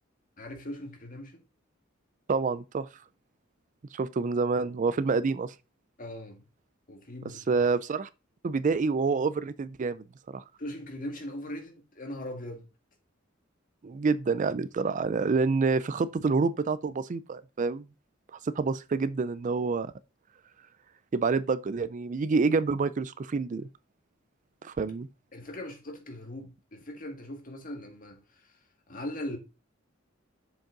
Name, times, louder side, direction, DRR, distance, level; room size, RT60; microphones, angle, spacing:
voice 1, 0.4-1.4 6.0-6.4 6.9-7.4 10.6-12.7 25.3-28.5 28.9-29.4, left 1 dB, 45° left, 1.8 m, -40 dB
voice 2, 2.3-2.9 3.9-5.5 7.5-8.1 8.4-10.0 10.3-10.4 13.8-17.8 18.4-19.9 21.1-23.7 24.6-25.1, right 4 dB, 40° right, 0.4 m, -27 dB
7.3 x 5.3 x 3.8 m
head